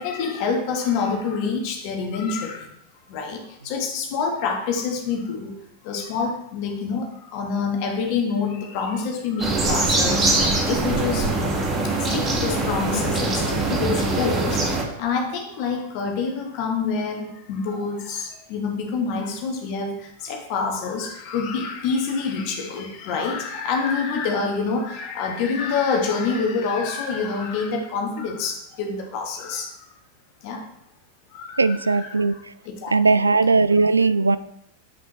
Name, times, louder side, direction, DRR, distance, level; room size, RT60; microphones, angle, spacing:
voice 1, 0.0-2.7 3.1-5.6 5.8-11.3 11.8-29.8 30.4-30.7 31.3-32.2 32.6-33.1, left 5 dB, 45° left, 1 dB, 1.2 m, -27 dB
sound 1, 9.4-14.8, right 2 dB, 25° right, 1.5 m, -22 dB
voice 2, 31.6-32.4 32.9-34.4, right 3 dB, 80° right, 14 dB, 0.3 m, -18 dB
7.9 x 6.0 x 3.0 m, 0.76 s
figure-of-eight pair, 90°, 0 cm